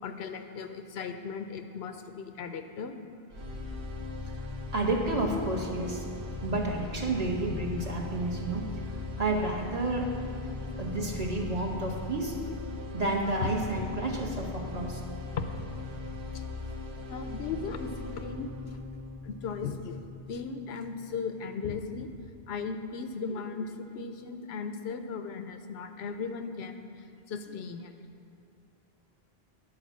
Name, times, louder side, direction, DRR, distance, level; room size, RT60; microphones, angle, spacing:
voice 1, 0.0-2.9 13.4-13.5 15.4-15.5 16.3-16.4 17.1-18.5 19.2-22.1 22.5-26.9 27.3-27.9, left 5 dB, 80° left, 7 dB, 0.9 m, -37 dB
sound 1, 3.3-21.3, left 3 dB, 90° right, 1.3 m, -39 dB
voice 2, 4.7-6.1 6.4-8.7 9.2-10.1 10.8-12.4 12.9-15.0, right 2 dB, 40° right, -1 dB, 1.1 m, -30 dB
10.5 x 4.6 x 7.2 m, 2.4 s
omnidirectional pair, 1.1 m